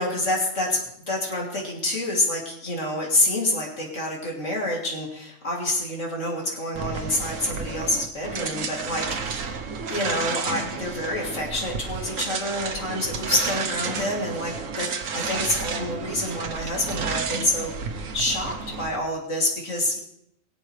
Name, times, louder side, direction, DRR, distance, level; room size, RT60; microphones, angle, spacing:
voice 1, 0.0-9.6 9.9-14.9 15.1-20.0, left 1 dB, 70° left, -2 dB, 3.2 m, -27 dB
sound 1, 6.7-19.0, right 5 dB, 80° right, 1.4 m, -31 dB
22.5 x 7.7 x 3.2 m, 0.75 s
omnidirectional pair, 1.3 m